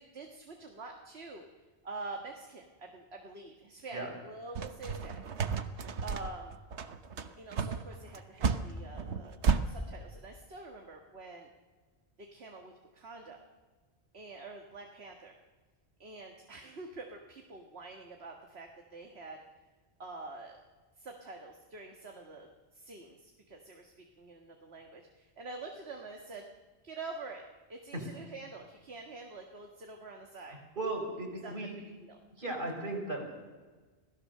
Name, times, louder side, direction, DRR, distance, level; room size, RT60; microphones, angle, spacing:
voice 1, 0.0-1.4 1.8-5.2 6.0-6.6 7.4-9.4 9.7-11.5 12.2-13.4 14.1-15.4 16.0-19.4 20.0-20.6 21.0-26.5 26.8-27.4 27.7-30.6 31.4-31.5 32.0-32.2, right 3 dB, 65° right, 2 dB, 1.9 m, -46 dB
sound 1, 4.6-9.6, right 5 dB, 85° right, 1.3 m, -32 dB
voice 2, 30.7-31.7 32.4-33.2, right 2 dB, 50° right, 1 dB, 5.1 m, -36 dB
26.5 x 17.0 x 6.6 m, 1.3 s
omnidirectional pair, 1.1 m